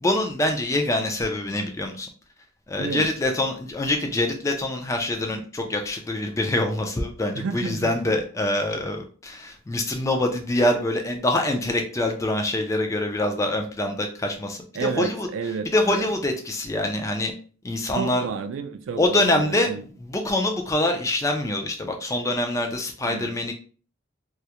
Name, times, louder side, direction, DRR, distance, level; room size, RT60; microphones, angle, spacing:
voice 1, 0.0-2.1 2.7-15.3 15.7-17.3 17.6-18.3 19.0-19.7 20.0-23.5, left 1 dB, 15° left, 0.3 m, -25 dB
voice 2, 2.8-3.1 7.3-7.9 14.7-16.1 18.0-19.8 23.1-23.3, right 5 dB, 75° right, 0.3 m, -31 dB
2.3 x 2.0 x 2.8 m
head